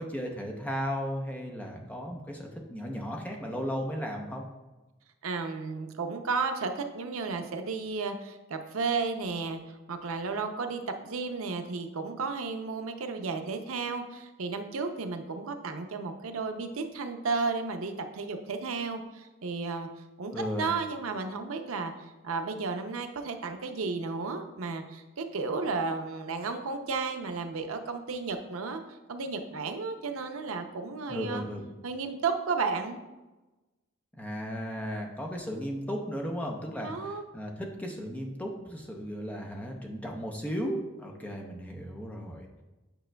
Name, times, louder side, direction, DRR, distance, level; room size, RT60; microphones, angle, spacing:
voice 1, 0.0-4.4 20.3-20.7 31.1-31.7 34.2-42.6, equal, 5° left, 0 dB, 0.6 m, -35 dB
voice 2, 5.2-19.9 20.2-21.9 22.2-28.8 29.1-31.4 31.8-33.0 36.8-37.2, right 4 dB, 85° right, 6 dB, 0.6 m, -33 dB
8.9 x 5.1 x 2.2 m, 1.1 s
head